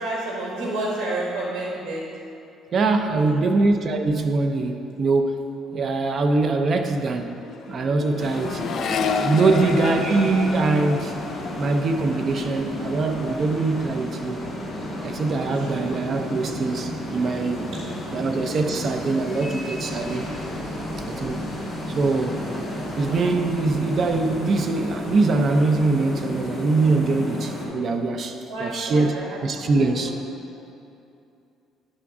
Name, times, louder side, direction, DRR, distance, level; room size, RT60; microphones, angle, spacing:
voice 1, 0.0-2.1 3.1-3.6 8.4-8.6 9.4-9.8 15.4-16.0 17.7-18.3 28.5-30.1, right 2 dB, 70° right, -4 dB, 1.4 m, -31 dB
voice 2, 2.7-7.3 7.7-8.6 9.2-11.2 11.6-14.4 15.0-17.7 18.1-20.3 21.0-21.5 21.9-22.5 23.0-30.1, right 3 dB, 45° right, 6 dB, 0.5 m, -23 dB
Accelerating revving vroom, 5.8-6.0 6.3-13.8 14.1-14.7, left 5 dB, 55° left, 0.4 m, -32 dB
sound 1, 8.2-27.7, left 1 dB, 10° left, 2.0 m, -32 dB
9.8 x 3.5 x 5.9 m, 2.7 s
cardioid pair, 110°, 0 cm